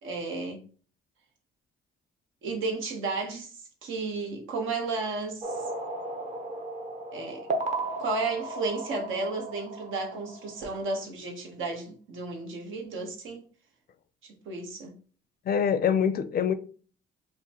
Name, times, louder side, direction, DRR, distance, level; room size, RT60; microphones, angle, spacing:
voice 1, 0.0-0.6 2.4-3.5 3.8-5.5 7.1-7.4 8.0-13.4 14.2-14.9, right 3 dB, 80° right, 1.0 m, -33 dB
sound 1, 5.4-10.8, right 2 dB, 35° right, 0.7 m, -35 dB
voice 2, 15.5-16.5, left 7 dB, 50° left, 0.4 m, -24 dB
4.9 x 2.2 x 2.9 m
cardioid pair, 90°, 20 cm